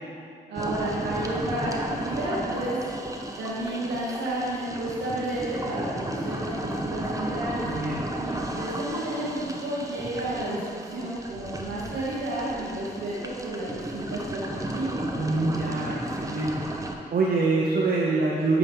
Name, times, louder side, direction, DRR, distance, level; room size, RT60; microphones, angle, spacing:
voice 1, 0.5-2.8 3.4-7.7 8.2-14.4 14.7-15.0, right 1 dB, 90° right, -7 dB, 1.1 m, -31 dB
sound 1, 0.6-16.9, right 1 dB, 20° right, 0.8 m, -34 dB
voice 2, 7.7-8.0 15.1-16.5 17.1-18.6, right 3 dB, 55° right, -4 dB, 0.9 m, -25 dB
8.9 x 3.1 x 5.3 m, 2.5 s
supercardioid pair, 50°, 18 cm